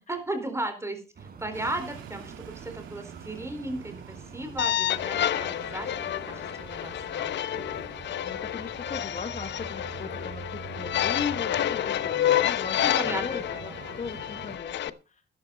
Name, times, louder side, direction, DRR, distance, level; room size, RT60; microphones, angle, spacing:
voice 1, 0.1-1.0 1.4-7.3 12.8-13.8, right 1 dB, 15° right, 7 dB, 4.3 m, -35 dB
sound 1, 1.1-14.6, right 5 dB, 50° right, 3.8 m, -45 dB
sound 2, 1.5-14.3, right 9 dB, 85° right, 2.4 m, -50 dB
sound 3, 4.6-14.9, left 11 dB, 65° left, 0.8 m, -29 dB
voice 2, 8.2-13.7 14.0-14.9, left 5 dB, 40° left, 9 dB, 1.4 m, -38 dB
13.0 x 11.5 x 4.1 m, 0.30 s
cardioid pair, 90°, 20 cm